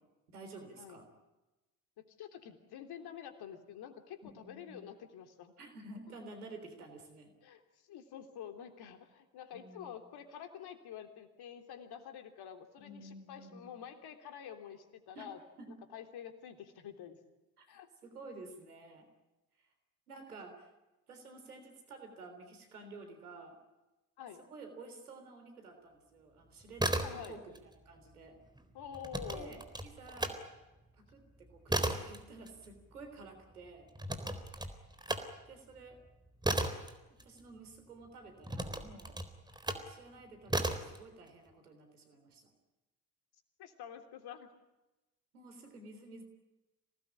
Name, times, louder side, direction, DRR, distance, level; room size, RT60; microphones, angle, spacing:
voice 1, 0.3-1.1 4.4-4.9 5.6-7.3 9.5-10.1 12.8-13.8 15.1-15.3 15.6-15.8 17.6-17.7 18.0-19.1 19.6-19.7 20.1-20.7 21.1-23.6 24.5-28.4 29.3-30.4 30.9-33.9 35.5-36.0 37.2-39.2 39.8-42.5 45.3-46.2, right 3 dB, 90° right, 6 dB, 3.7 m, -51 dB
voice 2, 2.0-5.5 7.4-15.4 15.9-17.2 17.7-17.9 24.2-24.4 27.0-27.4 28.7-29.6 43.6-44.5, left 9 dB, 60° left, 7 dB, 3.4 m, -48 dB
sound 1, 26.6-27.6 27.9-30.4 30.8-37.8 38.4-39.9 40.5-41.0, right 1 dB, 10° right, 3.9 m, -36 dB
26.0 x 19.0 x 10.0 m, 1.0 s
hypercardioid pair, 50°, 44 cm